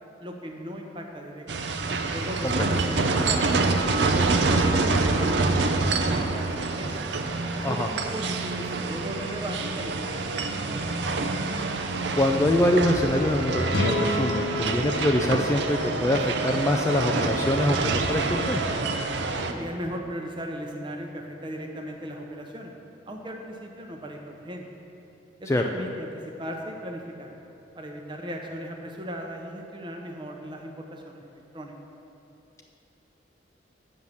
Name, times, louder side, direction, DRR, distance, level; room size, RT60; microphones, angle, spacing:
voice 1, 0.2-1.5 2.1-6.9 7.5-10.9 19.4-22.7 23.1-24.7 25.4-27.3 27.7-31.7, equal, 25° right, 2 dB, 0.8 m, -37 dB
sound 1, 1.5-19.5, right 3 dB, 65° right, 0.5 m, -26 dB
Bass guitar, 3.0-9.3, right 5 dB, 5° right, 1.6 m, -41 dB
voice 2, 12.2-18.6 25.5-25.6, left 1 dB, 15° left, 2 dB, 0.3 m, -24 dB
sound 2, 13.7-17.0, left 1 dB, 60° left, 0.7 m, -31 dB
7.8 x 5.5 x 7.3 m, 2.9 s
head